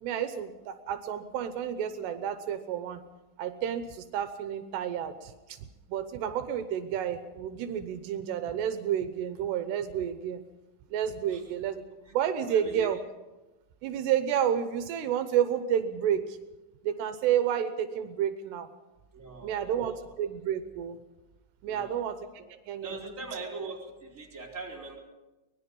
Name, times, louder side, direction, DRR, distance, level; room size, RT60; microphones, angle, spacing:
voice 1, 0.0-3.0 3.4-5.6 5.9-10.4 10.9-11.8 12.1-13.0 13.8-16.4 16.8-18.7 19.4-21.0 21.6-22.3 22.7-23.0, right 9 dB, 80° right, 9 dB, 3.0 m, -30 dB
voice 2, 12.5-12.9 19.1-20.0 21.6-22.0 22.8-25.0, right 4 dB, 20° right, -2 dB, 3.9 m, -41 dB
24.0 x 20.0 x 5.4 m, 1.1 s
omnidirectional pair, 4.8 m